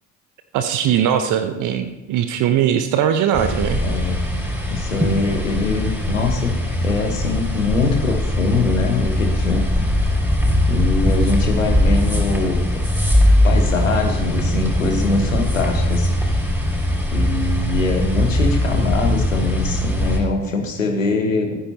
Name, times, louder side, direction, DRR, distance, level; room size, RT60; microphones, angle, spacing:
voice 1, 0.5-3.8, right 9 dB, 50° right, 9 dB, 1.0 m, -20 dB
sound 1, 3.3-20.2, left 1 dB, 5° right, 5.2 m, -20 dB
voice 2, 3.8-4.2 4.7-9.6 10.7-12.7 13.4-16.1 17.1-21.6, left 3 dB, 85° left, 3 dB, 1.4 m, -23 dB
27.5 x 9.8 x 2.9 m, 1.1 s
figure-of-eight pair, 50°, 38 cm